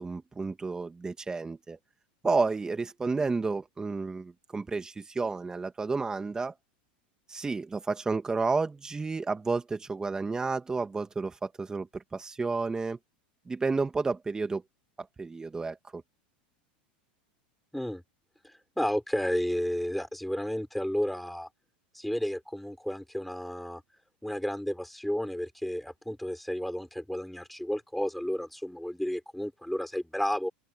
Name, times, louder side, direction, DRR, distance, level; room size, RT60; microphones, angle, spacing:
voice 1, 0.0-1.8 2.2-6.5 7.3-13.0 13.5-14.6 15.0-16.0, right 4 dB, 15° right, 2.4 m, -31 dB
voice 2, 18.4-21.5 21.9-23.8 24.2-30.5, equal, ahead, 5.1 m, -32 dB
open air
supercardioid pair, 120°, 5 cm